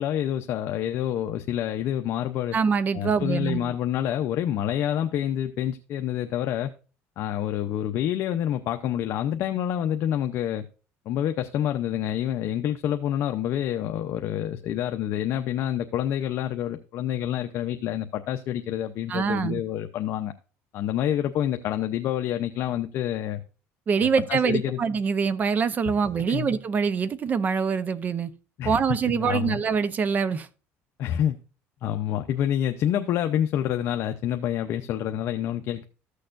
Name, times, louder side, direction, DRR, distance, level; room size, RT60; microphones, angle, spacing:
voice 1, 0.0-2.6 2.9-6.7 7.2-10.6 11.1-20.3 20.7-23.4 24.3-24.8 26.3-26.5 28.6-29.6 31.0-31.4 31.8-35.8, left 10 dB, 55° left, 0.6 m, -27 dB
voice 2, 2.5-3.7 19.1-19.6 23.9-28.3 28.6-30.5, right 6 dB, 30° right, 0.7 m, -24 dB
14.0 x 6.6 x 2.5 m
cardioid pair, 140°, 5 cm